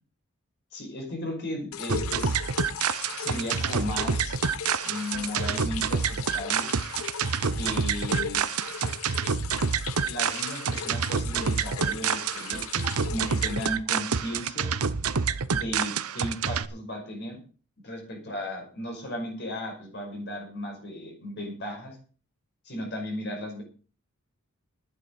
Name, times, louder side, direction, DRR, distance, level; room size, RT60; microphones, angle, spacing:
voice 1, 0.7-2.4 3.2-4.4 4.8-6.7 7.6-8.4 10.0-14.7 15.5-17.4 17.8-22.0 22.6-23.6, left 1 dB, 50° left, 2 dB, 5.5 m, -35 dB
sound 1, 1.7-13.7, left 8 dB, 75° left, 1.0 m, -38 dB
sound 2, 1.9-16.6, right 6 dB, 80° right, 0.9 m, -28 dB
12.0 x 9.5 x 6.7 m, 0.39 s
head